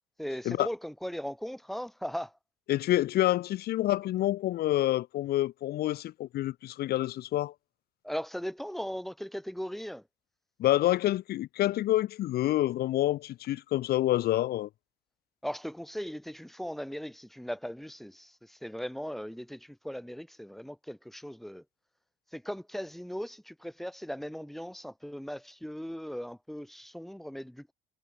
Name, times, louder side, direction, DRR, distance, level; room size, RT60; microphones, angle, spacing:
voice 1, 0.2-2.3 8.0-10.0 15.4-21.6 22.3-27.7, equal, ahead, 6.9 m, -38 dB
voice 2, 2.7-7.5 10.6-14.7, left 14 dB, 70° left, 1.3 m, -27 dB
cardioid pair, 110°, 17 cm